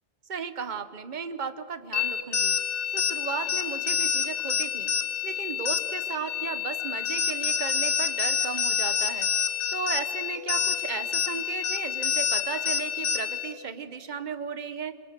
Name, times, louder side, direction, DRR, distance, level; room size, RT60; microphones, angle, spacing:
voice 1, 0.3-2.6 2.9-4.9 5.2-9.3 9.7-14.9, right 6 dB, 40° right, 11 dB, 1.2 m, -35 dB
sound 1, 1.9-13.5, left 7 dB, 85° left, 1.8 m, -28 dB
26.5 x 25.0 x 6.8 m, 2.1 s
omnidirectional pair, 1.2 m